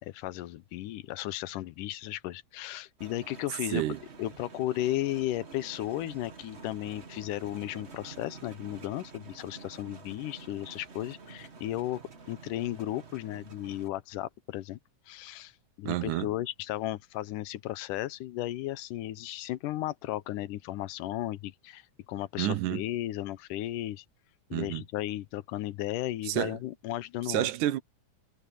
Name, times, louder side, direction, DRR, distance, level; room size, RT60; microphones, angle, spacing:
voice 1, 0.0-3.9 4.2-12.0 12.3-14.8 15.1-24.1 24.5-27.5, left 14 dB, 90° left, 2.4 m, -35 dB
sound 1, 3.0-13.9, right 4 dB, 50° right, 0.8 m, -49 dB
voice 2, 15.9-16.3 22.4-22.8 24.5-24.8 26.3-26.6 27.3-27.8, right 14 dB, 80° right, 2.3 m, -29 dB
omnidirectional pair, 3.6 m